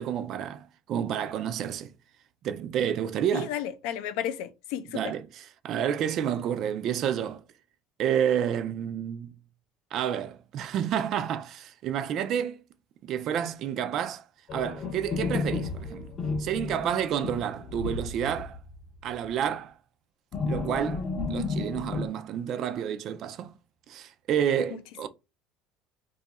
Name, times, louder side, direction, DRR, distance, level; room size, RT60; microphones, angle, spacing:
voice 1, 0.0-1.9 2.4-3.5 4.9-7.4 8.0-9.3 9.9-12.6 13.0-14.2 14.5-16.1 16.4-18.6 19.0-19.8 20.5-23.5 23.9-25.1, right 9 dB, 40° right, 0.3 m, -30 dB
voice 2, 3.3-5.1, left 10 dB, 70° left, 0.4 m, -33 dB
sound 1, 14.5-18.8 19.1-19.3 20.3-22.1, left 4 dB, 25° left, 0.6 m, -32 dB
2.6 x 2.3 x 4.1 m
cardioid pair, 175°, 0 cm